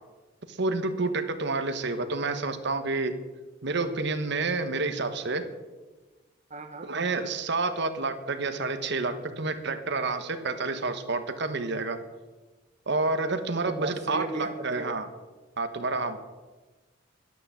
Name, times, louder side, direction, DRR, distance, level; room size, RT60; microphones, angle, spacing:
voice 1, 0.5-3.1 3.6-5.4 6.8-12.0 12.9-15.0 15.6-16.2, right 3 dB, 65° right, 9 dB, 1.3 m, -29 dB
voice 2, 6.5-6.9 13.7-14.9, right 2 dB, 40° right, 5 dB, 1.0 m, -36 dB
12.0 x 10.5 x 7.4 m, 1.2 s
head